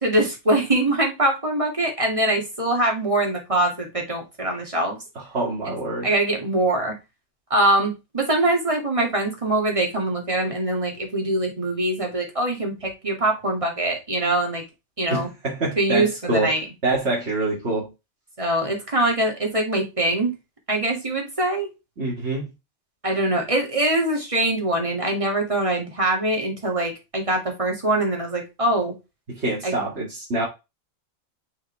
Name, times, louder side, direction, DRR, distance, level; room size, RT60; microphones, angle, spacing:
voice 1, 0.0-5.0 6.0-6.9 7.5-14.6 15.0-15.3 15.8-16.6 18.4-20.3 20.7-21.7 23.0-28.9 29.6-29.7, right 1 dB, 25° right, 2.5 m, -23 dB
voice 2, 5.3-6.1 15.1-17.9 22.0-22.5 29.3-30.5, right 2 dB, 55° right, 2.5 m, -26 dB
6.0 x 5.0 x 3.4 m
omnidirectional pair, 1.4 m